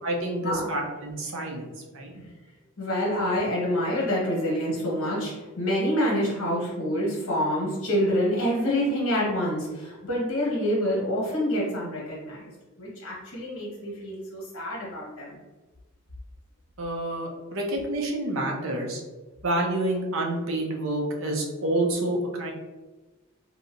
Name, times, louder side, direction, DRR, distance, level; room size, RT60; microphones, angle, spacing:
voice 1, 0.0-2.2 16.8-19.0 19.4-22.5, right 1 dB, 70° right, 0 dB, 0.6 m, -28 dB
voice 2, 2.8-12.5 12.8-15.4, equal, 75° left, -4 dB, 1.3 m, -27 dB
3.1 x 2.7 x 2.6 m, 1.2 s
head